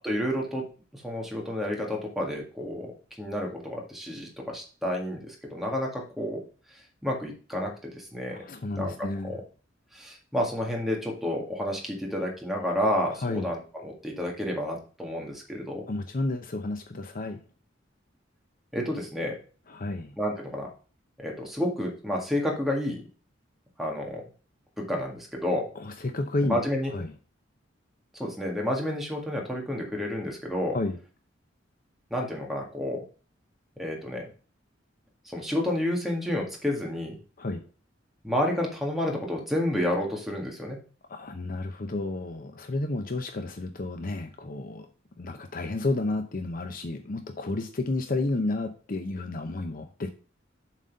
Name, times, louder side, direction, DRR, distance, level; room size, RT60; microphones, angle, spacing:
voice 1, 0.0-0.7 0.9-2.9 3.2-6.4 7.0-8.4 8.7-9.4 9.9-15.8 18.7-19.4 20.2-20.7 21.2-23.0 23.8-24.2 24.8-25.7 26.4-26.9 28.1-30.8 32.1-33.0 33.8-34.3 35.3-37.2 38.2-40.8, left 1 dB, ahead, -1 dB, 1.9 m, -30 dB
voice 2, 8.3-9.3 13.2-13.5 15.9-17.4 19.7-20.1 25.8-26.6 26.9-27.1 30.7-31.0 37.4-37.6 41.1-44.9 45.2-50.1, left 2 dB, 50° left, 6 dB, 0.7 m, -31 dB
7.5 x 4.2 x 5.2 m, 0.38 s
head